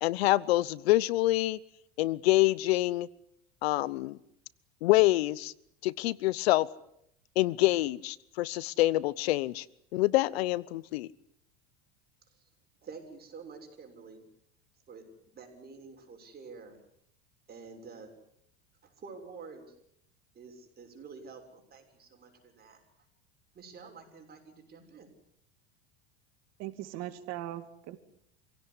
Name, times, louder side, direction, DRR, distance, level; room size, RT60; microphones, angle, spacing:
voice 1, 0.0-1.6 2.0-3.1 3.6-4.2 4.8-5.5 5.8-6.7 7.4-9.6 9.9-11.1, left 18 dB, 75° left, 22 dB, 1.0 m, -26 dB
voice 2, 12.8-14.2 14.9-16.8 17.5-18.1 18.8-19.7 20.3-22.8 23.5-25.1, right 4 dB, 30° right, 4 dB, 6.8 m, -49 dB
voice 3, 26.6-28.0, right 13 dB, 55° right, 10 dB, 2.6 m, -39 dB
27.0 x 17.0 x 10.0 m, 0.74 s
supercardioid pair, 105°, 31 cm